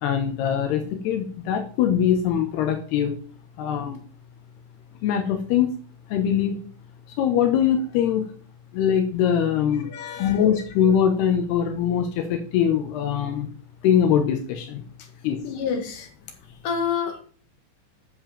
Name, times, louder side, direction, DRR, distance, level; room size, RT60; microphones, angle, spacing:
voice 1, 0.0-3.2 3.6-4.0 5.0-5.7 6.1-6.7 7.2-8.3 8.7-9.9 10.2-13.5 13.8-14.8 15.2-15.4, left 8 dB, 80° left, 5 dB, 3.1 m, -22 dB
voice 2, 9.8-10.4 15.0-15.1 15.4-16.1 16.6-17.2, left 6 dB, 60° left, 4 dB, 3.5 m, -28 dB
8.6 x 7.1 x 7.3 m, 0.42 s
omnidirectional pair, 4.7 m